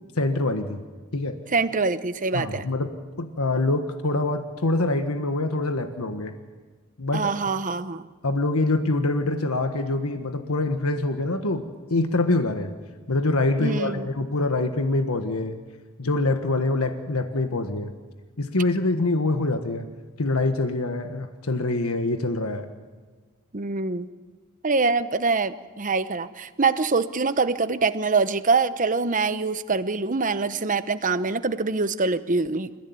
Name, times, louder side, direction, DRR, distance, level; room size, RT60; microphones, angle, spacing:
voice 1, 0.2-0.8 1.1-1.4 2.3-6.3 7.0-7.5 8.2-11.6 11.9-12.7 13.1-15.6 16.0-17.9 18.4-19.9 20.2-22.7, left 2 dB, 90° left, 7 dB, 1.5 m, -25 dB
voice 2, 1.5-2.7 7.1-8.1 13.6-14.1 23.5-24.1 24.6-32.7, right 4 dB, 35° right, 12 dB, 0.9 m, -24 dB
28.5 x 15.5 x 9.5 m, 1.4 s
head